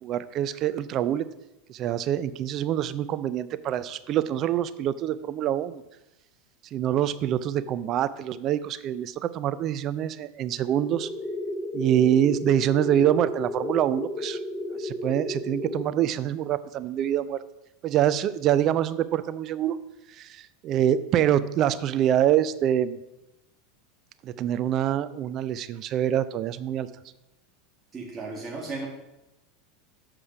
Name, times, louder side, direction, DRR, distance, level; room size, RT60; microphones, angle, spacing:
voice 1, 0.0-1.3 1.7-5.8 6.7-11.1 11.7-14.4 14.8-17.4 17.8-19.8 20.2-23.0 24.2-26.9, right 11 dB, 45° right, 14 dB, 0.4 m, -25 dB
sound 1, 10.8-15.8, left 1 dB, 15° left, 0.9 m, -33 dB
voice 2, 27.9-28.9, right 3 dB, 25° right, -2 dB, 1.9 m, -35 dB
7.3 x 4.9 x 5.9 m, 0.92 s
hypercardioid pair, 90°, 0 cm